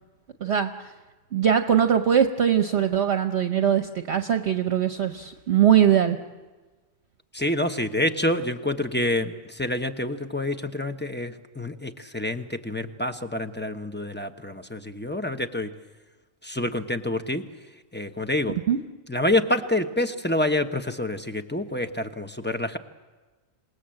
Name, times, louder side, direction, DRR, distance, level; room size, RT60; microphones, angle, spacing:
voice 1, 0.4-0.9 1.3-6.2 18.7-18.8, right 9 dB, 55° right, 7 dB, 1.1 m, -21 dB
voice 2, 7.3-15.7 16.4-17.4 17.9-18.6 19.1-22.8, left 1 dB, 10° left, 7 dB, 0.9 m, -27 dB
27.5 x 19.0 x 7.7 m, 1.3 s
omnidirectional pair, 1.4 m